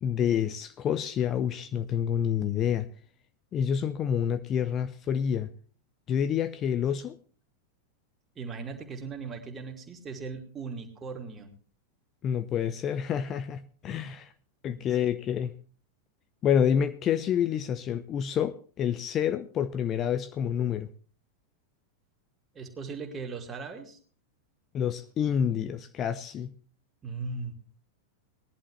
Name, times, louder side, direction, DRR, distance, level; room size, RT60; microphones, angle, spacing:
voice 1, 0.0-2.9 3.5-5.5 6.1-7.2 12.2-14.3 14.6-15.5 16.4-20.9 24.7-26.5, left 8 dB, 30° left, 0.6 m, -28 dB
voice 2, 8.4-11.5 14.0-14.1 14.8-14.9 22.5-24.0 27.0-27.5, right 4 dB, 20° right, 2.7 m, -38 dB
19.5 x 11.0 x 3.2 m
figure-of-eight pair, 90°, 0 cm